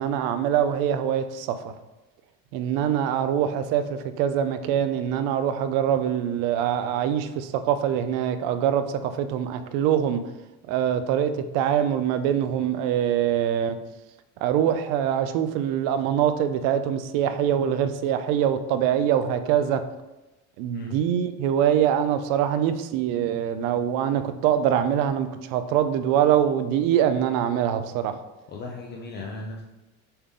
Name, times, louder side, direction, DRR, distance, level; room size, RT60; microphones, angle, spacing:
voice 1, 0.0-1.7 2.5-10.2 10.7-13.8 14.4-19.8 20.6-28.2, right 9 dB, 55° right, 10 dB, 0.6 m, -24 dB
voice 2, 28.5-29.6, left 2 dB, 25° left, -1 dB, 0.5 m, -36 dB
6.9 x 3.8 x 3.7 m, 1.1 s
cardioid pair, 165°, 40 cm